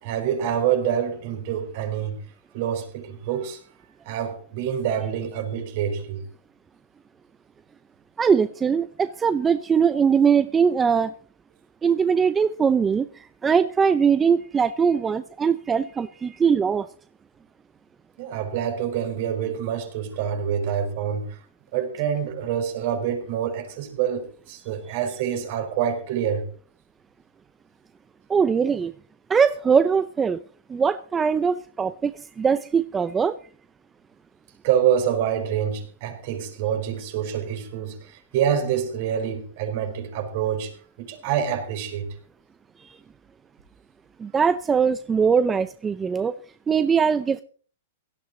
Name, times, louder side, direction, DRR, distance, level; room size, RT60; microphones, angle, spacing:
voice 1, 0.0-2.2 2.5-3.6 4.0-6.2 18.2-21.4 21.7-26.4 34.6-40.7 41.0-42.1, right 9 dB, 50° right, 4.6 m, -26 dB
voice 2, 8.2-11.1 11.8-16.9 28.3-28.9 29.3-30.4 30.7-33.3 42.8-43.0 44.2-46.3 46.7-47.4, right 6 dB, 15° right, 0.6 m, -21 dB
17.0 x 13.0 x 4.0 m
hypercardioid pair, 145°, 0 cm